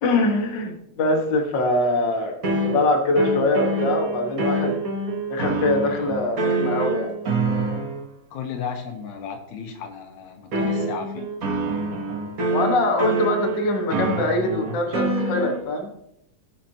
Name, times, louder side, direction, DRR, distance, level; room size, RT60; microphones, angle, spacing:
voice 1, 0.0-4.8 5.3-7.1 12.5-15.9, left 2 dB, 45° left, 1 dB, 1.8 m, -23 dB
sound 1, 2.4-8.0 10.5-15.6, right 2 dB, 50° right, 1.1 m, -26 dB
voice 2, 8.3-11.3, left 6 dB, 80° left, 4 dB, 2.5 m, -34 dB
18.0 x 6.4 x 2.9 m, 0.79 s
omnidirectional pair, 3.3 m